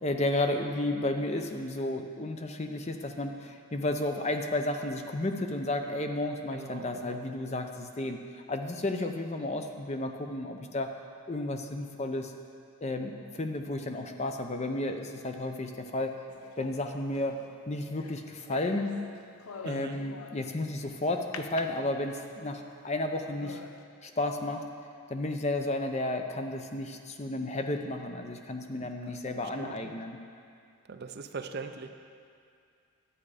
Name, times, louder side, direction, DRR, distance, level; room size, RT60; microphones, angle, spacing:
voice 1, 0.0-10.9 11.3-12.3 12.8-16.1 16.6-17.4 17.7-18.9 19.6-23.6 24.0-24.6 25.1-30.2, left 2 dB, 30° left, 5 dB, 0.6 m, -32 dB
voice 2, 6.5-7.2 19.6-20.0 28.8-29.2 29.6-29.9 30.9-31.9, right 4 dB, 50° right, 8 dB, 0.5 m, -41 dB
sound 1, 16.3-20.7 21.3-22.4 22.9-23.0 23.4-23.8, left 5 dB, 80° left, 0.5 m, -46 dB
11.0 x 8.5 x 4.9 m, 2.3 s
head